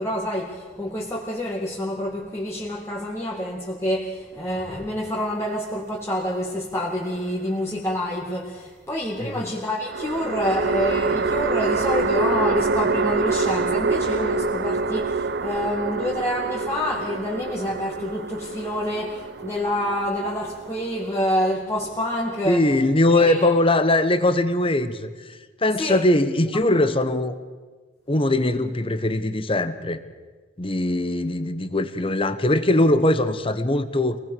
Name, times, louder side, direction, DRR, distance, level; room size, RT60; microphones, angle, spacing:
voice 1, 0.0-22.6 23.1-23.5 25.8-26.0, left 1 dB, 15° left, -4 dB, 2.4 m, -27 dB
sound 1, 6.7-7.6 9.9-21.2, right 4 dB, 60° right, 0.7 m, -26 dB
voice 2, 9.2-9.5 22.5-27.4 28.1-30.0 30.6-34.2, left 1 dB, 30° left, 12 dB, 1.2 m, -21 dB
25.5 x 19.0 x 6.9 m, 1.4 s
head